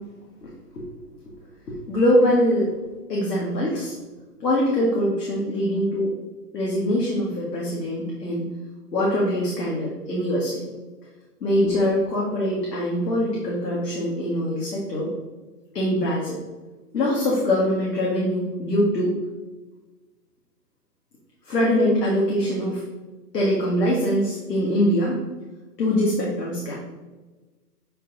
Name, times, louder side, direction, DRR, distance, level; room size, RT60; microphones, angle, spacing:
voice 1, 0.4-0.8 1.7-2.7 3.1-3.9 4.4-6.1 6.5-8.5 8.9-10.6 11.4-15.1 15.7-16.4 16.9-19.1 21.5-22.8 23.3-25.2 25.8-26.7, equal, 85° left, -4 dB, 1.9 m, -23 dB
7.6 x 3.3 x 4.0 m, 1.2 s
hypercardioid pair, 175°, 48 cm